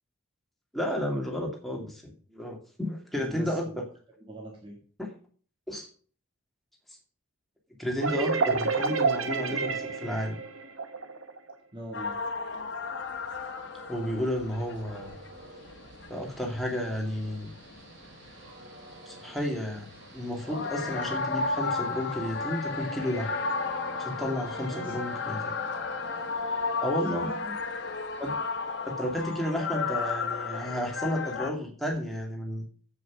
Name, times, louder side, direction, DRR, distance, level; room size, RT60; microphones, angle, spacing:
voice 1, 0.7-3.7 5.0-5.1 5.7-5.9 7.8-10.4 13.9-15.2 16.1-17.5 19.1-23.3 24.0-25.5 26.8-27.3 28.2-28.4 28.9-32.6, equal, ahead, -1 dB, 2.3 m, -32 dB
voice 2, 3.1-3.8 4.3-4.8 11.7-12.3 24.7-25.3 27.0-27.5, equal, 25° right, 0 dB, 1.8 m, -42 dB
sound 1, 8.0-11.5, right 4 dB, 75° right, 1.2 m, -29 dB
sound 2, 11.9-18.6 19.1-19.5 19.8-31.5, left 4 dB, 55° left, 1.3 m, -34 dB
Train, 12.6-29.3, right 1 dB, 60° right, 4.3 m, -48 dB
8.0 x 7.3 x 6.2 m, 0.43 s
head